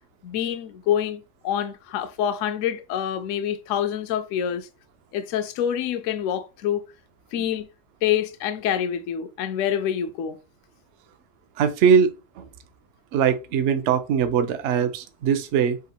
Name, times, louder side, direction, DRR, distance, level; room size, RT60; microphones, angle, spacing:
voice 1, 0.2-4.7 5.1-6.9 7.3-7.7 8.0-10.4, left 9 dB, 70° left, 0.7 m, -26 dB
voice 2, 11.6-12.1 12.4-12.5 13.1-15.8, right 7 dB, 75° right, 0.6 m, -21 dB
3.8 x 2.9 x 4.2 m
omnidirectional pair, 1.9 m